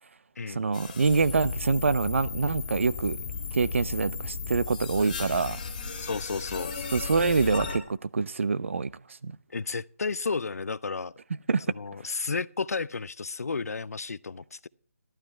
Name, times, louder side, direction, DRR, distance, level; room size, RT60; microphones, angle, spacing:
voice 1, 0.5-3.2 3.5-5.6 6.9-8.9 9.2-9.3 11.5-11.6, right 4 dB, 55° right, 0.6 m, -25 dB
sound 1, 0.7-7.8, left 5 dB, 25° left, 2.2 m, -35 dB
voice 2, 6.0-6.7 9.5-11.1 11.7-14.7, left 4 dB, 80° left, 0.6 m, -32 dB
12.5 x 12.0 x 4.4 m
hypercardioid pair, 175°, 8 cm